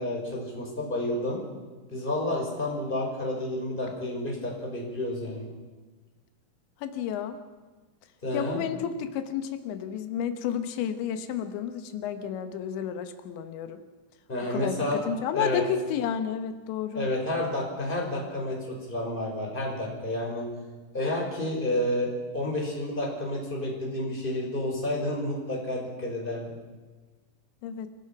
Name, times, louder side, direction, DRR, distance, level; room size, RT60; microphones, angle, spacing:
voice 1, 0.0-1.4 1.9-5.5 8.2-8.6 14.3-15.6 16.9-20.5 20.9-26.5, left 1 dB, 10° left, -1 dB, 5.2 m, -30 dB
voice 2, 6.8-7.4 8.3-13.8 14.5-17.1 27.6-27.9, left 8 dB, 85° left, 9 dB, 3.5 m, -31 dB
26.0 x 18.0 x 6.0 m, 1.3 s
omnidirectional pair, 5.0 m